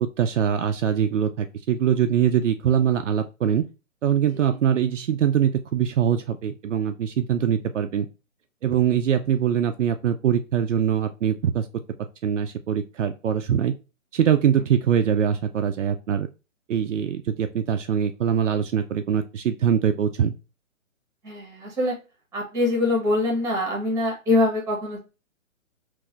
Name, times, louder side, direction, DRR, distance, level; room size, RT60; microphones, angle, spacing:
voice 1, 0.0-3.7 4.0-8.1 8.6-11.7 12.2-13.7 14.1-16.3 16.7-20.3, right 9 dB, 65° right, 7 dB, 0.5 m, -23 dB
voice 2, 21.2-21.9 22.3-25.0, left 2 dB, 10° right, 0 dB, 1.4 m, -23 dB
3.8 x 2.7 x 2.4 m, 0.29 s
figure-of-eight pair, 135°, 40 cm